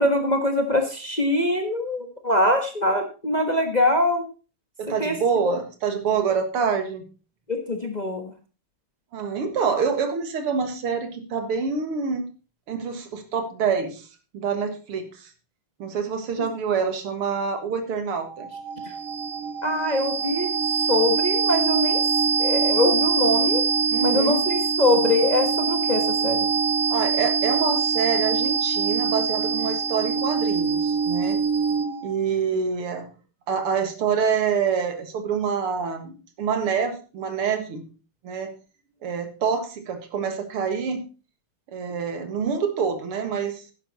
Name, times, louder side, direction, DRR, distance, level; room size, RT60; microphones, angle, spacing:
voice 1, 0.0-4.2 5.0-5.1 5.4-5.5 7.5-8.3 19.6-20.5 20.9-22.0 22.4-23.6 24.0-26.5, left 1 dB, 25° left, 5 dB, 1.2 m, -23 dB
voice 2, 4.8-7.0 9.1-12.3 12.7-14.1 14.3-15.3 15.8-18.5 23.9-24.4 26.9-31.4 32.0-33.1 33.5-37.8 38.2-38.5 39.0-41.0 41.7-43.6, right 6 dB, 80° right, 8 dB, 2.6 m, -26 dB
sound 1, 18.2-32.1, right 6 dB, 50° right, 1.1 m, -24 dB
11.5 x 10.0 x 4.1 m, 0.34 s
omnidirectional pair, 2.4 m